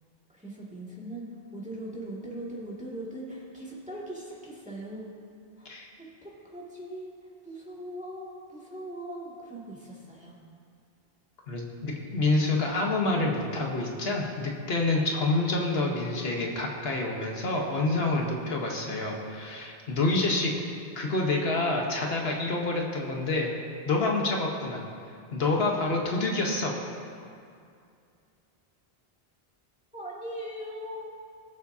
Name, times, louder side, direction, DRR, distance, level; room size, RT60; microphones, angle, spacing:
voice 1, 0.3-5.1 5.6-5.7 6.0-10.4 29.9-31.1, right 1 dB, 5° right, -6 dB, 2.1 m, -40 dB
voice 2, 11.5-20.5 20.9-23.5 23.8-24.8 25.3-26.7, left 2 dB, 75° left, 0 dB, 1.4 m, -27 dB
20.5 x 7.2 x 2.7 m, 2.4 s
omnidirectional pair, 1.0 m